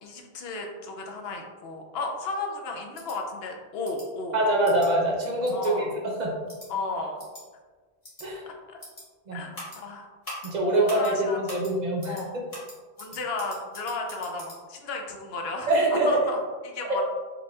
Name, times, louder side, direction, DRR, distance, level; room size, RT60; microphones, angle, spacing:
voice 1, 0.0-4.4 5.5-5.9 6.7-7.2 8.5-8.8 9.3-10.1 10.7-11.4 12.1-12.4 13.0-15.7 16.1-16.4 16.6-17.0, left 3 dB, 75° left, 2 dB, 0.9 m, -34 dB
sound 1, 2.9-3.2 3.8-4.1 4.6-4.9 5.4-5.7 6.5-6.7 7.2-7.4 8.0-8.3 8.8-9.0 9.5-9.8 10.2-10.5 10.9-11.1 11.5-11.7 12.0-12.2 12.5-14.6, left 1 dB, 35° left, 1.4 m, -42 dB
voice 2, 4.3-5.9 6.2-6.3 8.2-8.4 9.3-9.4 10.4-12.2 15.7-16.3 16.9-17.0, right 1 dB, 50° right, -2 dB, 0.7 m, -24 dB
5.0 x 2.9 x 2.3 m, 1.4 s
omnidirectional pair, 1.0 m